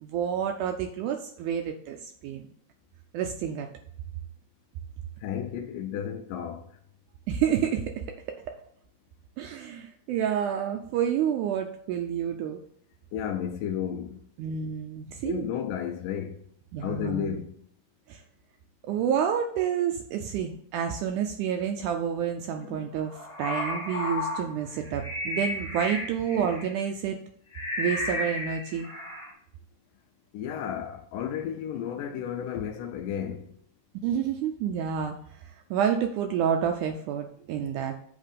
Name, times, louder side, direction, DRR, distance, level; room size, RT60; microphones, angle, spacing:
voice 1, 0.0-2.5 3.1-3.7 7.3-8.4 9.4-12.6 14.4-15.5 16.7-17.4 18.1-18.2 18.8-27.2 27.8-28.9 34.0-35.2 35.7-37.9, right 8 dB, 80° right, 1.9 m, -29 dB
voice 2, 5.2-6.6 13.1-14.2 15.2-16.4 16.8-17.5 22.6-22.9 30.3-33.4, left 9 dB, 80° left, 2.2 m, -33 dB
sound 1, 23.0-26.7 27.5-29.3, left 2 dB, 35° left, 1.0 m, -33 dB
8.3 x 3.2 x 5.1 m
omnidirectional pair, 3.9 m